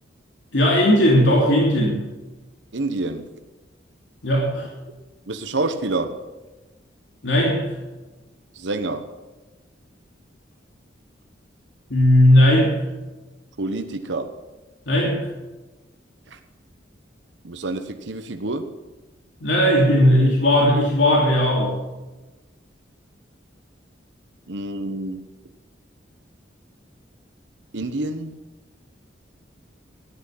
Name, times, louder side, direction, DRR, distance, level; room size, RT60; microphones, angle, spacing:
voice 1, 0.5-2.0 4.2-4.7 7.2-7.8 11.9-12.8 14.9-15.3 19.4-21.7, equal, 80° left, -3 dB, 3.0 m, -17 dB
voice 2, 2.7-3.3 5.3-6.2 8.5-9.0 13.6-14.3 16.3-16.4 17.4-18.7 24.5-25.2 27.7-28.3, right 2 dB, 75° right, 7 dB, 1.1 m, -27 dB
13.5 x 11.0 x 5.8 m, 1.1 s
head